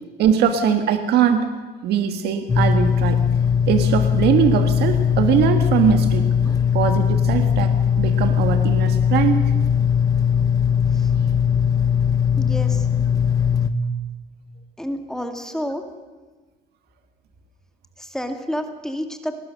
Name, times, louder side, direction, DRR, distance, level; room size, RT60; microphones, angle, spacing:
voice 1, 0.2-1.5 1.8-3.2 3.7-6.3 6.7-9.4, right 8 dB, 75° right, 7 dB, 1.7 m, -21 dB
sound 1, 2.5-13.7, left 7 dB, 20° left, 1.3 m, -19 dB
voice 2, 12.4-12.9 14.8-15.8 18.0-19.4, equal, 5° left, 5 dB, 2.1 m, -30 dB
21.0 x 19.5 x 6.7 m, 1.3 s
cardioid pair, 110°, 17 cm